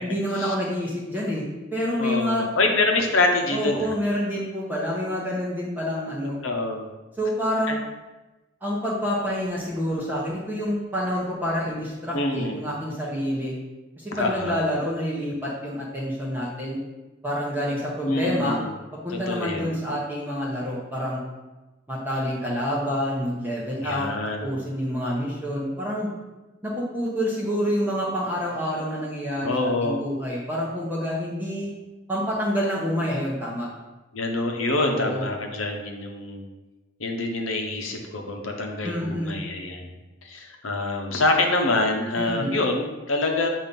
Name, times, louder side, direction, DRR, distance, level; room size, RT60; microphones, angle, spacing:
voice 1, 0.0-1.4 1.7-2.5 3.5-6.4 7.2-7.8 8.6-13.5 14.0-16.8 17.2-18.6 19.0-21.2 21.9-24.1 24.4-26.1 26.6-31.7 32.1-33.7 34.8-35.2 38.8-39.4 42.2-42.5, equal, 10° right, -6 dB, 0.9 m, -27 dB
voice 2, 2.0-3.9 6.4-6.9 7.7-7.8 12.1-12.6 14.1-14.5 18.0-18.7 19.1-19.7 23.8-24.6 29.4-30.0 34.1-36.4 37.0-39.9 40.2-43.5, left 2 dB, 75° left, 3 dB, 0.9 m, -26 dB
7.4 x 2.8 x 5.2 m, 1.1 s
head